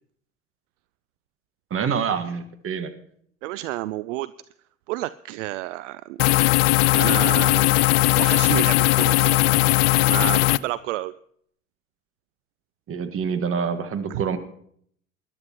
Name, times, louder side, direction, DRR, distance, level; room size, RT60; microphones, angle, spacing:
voice 1, 1.7-2.9 12.9-14.4, right 6 dB, 35° right, 9 dB, 1.6 m, -26 dB
voice 2, 3.4-4.3 4.9-6.5 6.9-7.7 8.2-9.5 10.1-11.1 14.1-14.2, right 16 dB, 65° right, 17 dB, 0.5 m, -30 dB
sound 1, 6.2-10.6, left 19 dB, 50° left, 0.5 m, -18 dB
21.0 x 11.5 x 3.0 m, 0.65 s
figure-of-eight pair, 75°, 41 cm